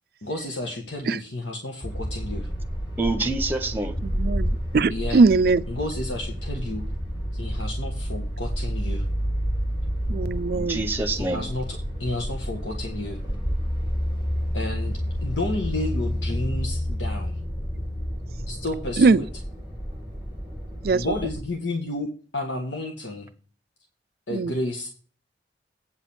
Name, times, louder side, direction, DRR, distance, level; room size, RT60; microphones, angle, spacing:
voice 1, 0.2-2.5 4.9-5.2 5.7-6.8 7.3-9.0 11.1-13.2 14.5-17.3 18.5-19.3 20.9-22.1 22.3-23.3 24.3-24.9, left 2 dB, 85° left, 1.5 m, -31 dB
sound 1, 1.8-21.4, equal, 25° left, 2.9 m, -29 dB
voice 2, 3.0-4.0 10.5-11.4, right 2 dB, 10° right, 0.9 m, -27 dB
voice 3, 4.0-5.6 10.1-10.8 19.0-19.2 20.8-21.0 24.3-24.5, right 4 dB, 55° right, 0.4 m, -20 dB
8.8 x 5.0 x 7.1 m
head